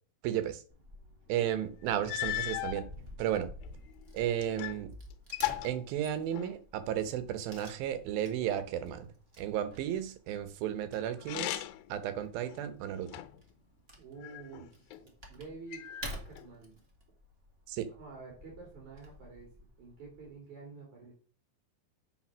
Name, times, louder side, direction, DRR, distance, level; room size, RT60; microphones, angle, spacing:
voice 1, 0.2-0.6 1.3-2.9 3.2-3.5 4.1-4.9 5.6-9.1 9.4-11.6 11.9-13.1 17.7-17.9, right 10 dB, 80° right, 2.7 m, -33 dB
Wood / Tearing, 0.7-20.3, equal, 30° right, 1.2 m, -51 dB
sound 1, 1.5-1.6 2.1-2.8 3.6-4.8 5.1-6.6 11.2-11.9 12.5-13.5 14.2-15.0 15.7-16.5, left 15 dB, 90° left, 2.5 m, -37 dB
voice 2, 14.0-15.0 15.3-16.7 18.0-19.5 19.8-21.1, right 4 dB, 55° right, 4.0 m, -49 dB
8.7 x 4.2 x 6.0 m
omnidirectional pair, 4.2 m